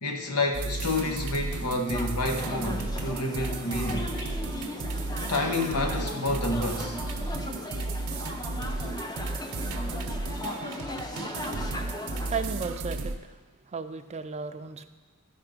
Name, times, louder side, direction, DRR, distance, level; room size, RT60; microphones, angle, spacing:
voice 1, 0.0-4.1 5.3-7.0, left 2 dB, 85° left, 4 dB, 1.1 m, -29 dB
sound 1, 0.5-13.2, right 2 dB, 75° right, 0.7 m, -34 dB
sound 2, 1.9-12.4, left 1 dB, 20° left, 0.6 m, -38 dB
voice 2, 12.3-13.4 13.7-14.9, right 5 dB, 30° right, 8 dB, 0.5 m, -34 dB
13.0 x 5.2 x 5.1 m, 1.2 s
head